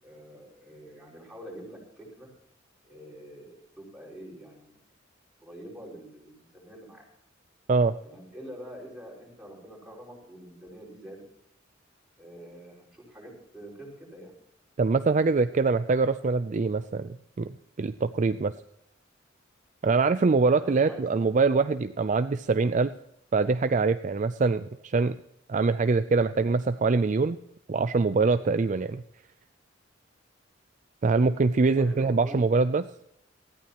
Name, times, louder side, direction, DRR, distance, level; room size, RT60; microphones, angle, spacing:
voice 1, 0.0-2.3 2.8-4.8 5.4-7.0 8.0-11.2 12.2-14.3 20.5-21.4 31.6-32.5, equal, 5° right, -4 dB, 5.5 m, -46 dB
voice 2, 14.8-17.5 17.8-18.5 19.8-22.9 23.3-25.2 25.5-27.4 27.7-29.0 31.0-32.8, right 4 dB, 40° right, 11 dB, 0.4 m, -24 dB
19.0 x 14.5 x 3.0 m, 0.74 s
head